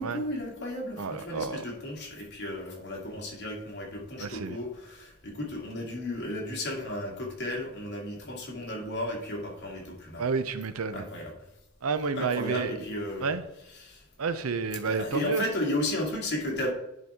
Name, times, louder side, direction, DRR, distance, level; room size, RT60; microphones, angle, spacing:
voice 1, 0.0-10.3 10.9-11.3 12.1-13.3 13.7-14.0 14.8-16.7, left 1 dB, 55° left, -1 dB, 2.3 m, -34 dB
voice 2, 1.0-1.6 4.2-4.6 10.2-11.0 11.8-12.7 13.2-13.4 14.2-15.4, right 4 dB, 80° right, 12 dB, 0.6 m, -30 dB
10.5 x 4.7 x 3.6 m, 0.86 s
head